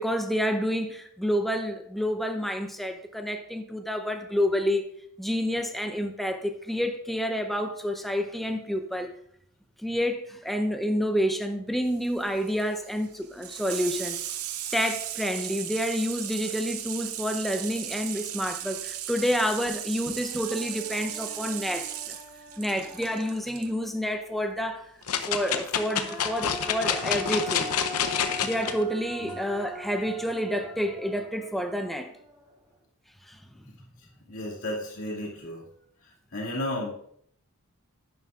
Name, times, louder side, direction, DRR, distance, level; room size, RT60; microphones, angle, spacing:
voice 1, 0.0-4.8 5.2-6.4 6.7-9.1 9.8-14.2 14.7-21.9 22.6-24.9 25.3-27.7 28.3-32.1, equal, ahead, 0.6 m, -29 dB
Water tap faucet / Sink (filling or washing), 11.9-23.7 25.0-25.1, right 11 dB, 75° right, 0.7 m, -37 dB
Human voice, 19.7-19.8 20.1-23.8 25.4-32.7, equal, 20° right, 3.1 m, -42 dB
sound 1, 25.1-28.7 29.3-29.4, left 8 dB, 85° left, 0.7 m, -28 dB
voice 2, 34.3-35.7 36.3-36.9, left 1 dB, 60° left, 2.3 m, -33 dB
11.0 x 9.4 x 2.5 m
head